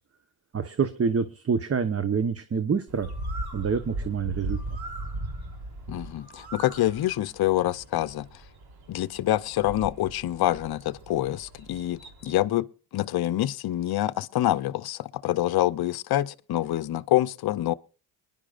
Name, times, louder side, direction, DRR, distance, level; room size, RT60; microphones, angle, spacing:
voice 1, 0.5-3.1 3.5-4.6, right 6 dB, 30° right, 1.0 m, -26 dB
Bird, 2.9-12.5, right 1 dB, 55° right, 3.5 m, -38 dB
voice 2, 5.9-8.3 8.9-12.7 12.9-17.7, left 14 dB, 55° left, 0.7 m, -26 dB
21.5 x 11.0 x 2.5 m
supercardioid pair, 70°, 46 cm